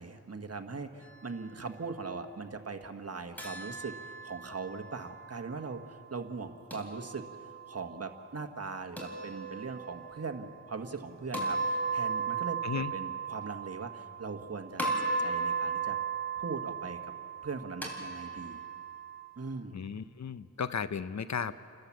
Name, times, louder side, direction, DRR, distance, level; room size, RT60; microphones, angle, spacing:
voice 1, 0.0-3.9 4.2-7.2 7.7-16.0 16.4-17.0 17.4-18.6 19.4-19.8, right 4 dB, 45° right, 6 dB, 1.5 m, -40 dB
sound 1, 3.4-5.5 6.7-7.7 9.0-10.2 11.3-14.4 14.8-19.2, right 4 dB, 5° left, 4.1 m, -36 dB
voice 2, 19.7-21.5, left 6 dB, 55° left, 14 dB, 0.7 m, -35 dB
30.0 x 11.5 x 7.5 m, 2.6 s
cardioid pair, 55°, 33 cm